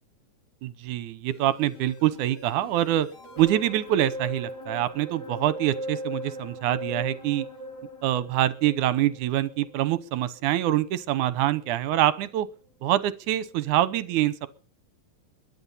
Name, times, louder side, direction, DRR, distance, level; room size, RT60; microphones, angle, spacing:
voice 1, 0.6-3.1 3.4-7.5 8.0-12.5 12.8-14.5, right 13 dB, 70° right, 16 dB, 2.1 m, -25 dB
sound 1, 1.3-11.7 12.1-12.2, equal, 45° left, 4.4 m, -39 dB
22.0 x 11.0 x 5.6 m, 0.40 s
omnidirectional pair, 4.1 m